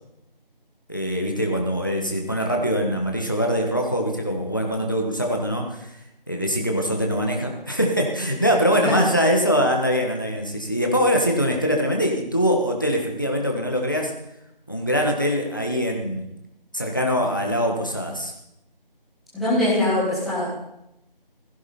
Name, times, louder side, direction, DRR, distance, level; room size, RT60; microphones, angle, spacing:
voice 1, 0.9-5.9 6.3-14.1 14.7-16.2 16.7-18.3, equal, 20° left, 1 dB, 1.4 m, -23 dB
voice 2, 19.3-20.5, left 1 dB, ahead, -13 dB, 1.2 m, -22 dB
16.5 x 15.0 x 4.2 m, 0.84 s
figure-of-eight pair, 175°, 29 cm